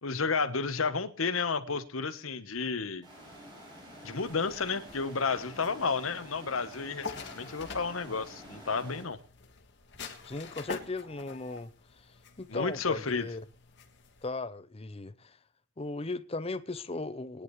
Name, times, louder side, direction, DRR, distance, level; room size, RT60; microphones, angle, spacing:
voice 1, 0.0-3.1 4.0-9.2 12.5-13.3, left 4 dB, 80° left, 1.2 m, -31 dB
sound 1, 3.0-9.0, equal, 20° right, 7.8 m, -49 dB
sound 2, 4.2-14.3, left 4 dB, 55° left, 1.8 m, -47 dB
voice 2, 10.2-11.7 12.4-13.4 14.2-15.4 15.8-17.4, left 3 dB, 30° left, 0.7 m, -37 dB
21.0 x 10.5 x 3.2 m
head